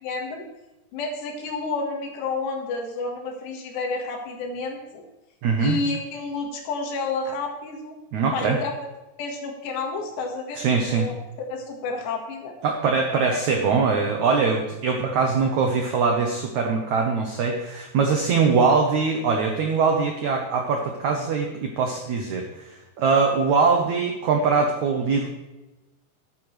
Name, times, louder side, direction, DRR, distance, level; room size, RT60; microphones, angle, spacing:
voice 1, 0.0-0.5 0.9-5.0 5.6-8.0 8.3-8.7 9.2-10.6 10.9-11.2 11.5-12.6, left 3 dB, 80° left, 2 dB, 3.9 m, -30 dB
voice 2, 5.4-5.8 8.1-8.6 10.6-11.1 12.6-25.3, right 5 dB, 85° right, 2 dB, 1.6 m, -22 dB
13.5 x 11.0 x 3.3 m, 1.0 s
omnidirectional pair, 4.9 m